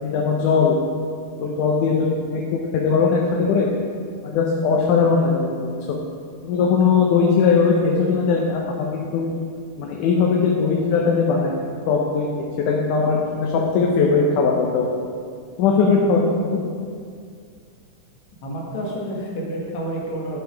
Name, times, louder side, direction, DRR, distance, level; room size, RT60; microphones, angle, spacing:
voice 1, 0.0-0.8 1.4-3.7 4.2-6.0 6.4-9.3 9.8-11.6 11.9-14.9 15.6-16.6, left 5 dB, 75° left, -1 dB, 2.2 m, -20 dB
voice 2, 18.4-20.4, right 1 dB, 60° left, -4 dB, 2.8 m, -29 dB
11.5 x 5.4 x 5.0 m, 2.2 s
omnidirectional pair, 3.9 m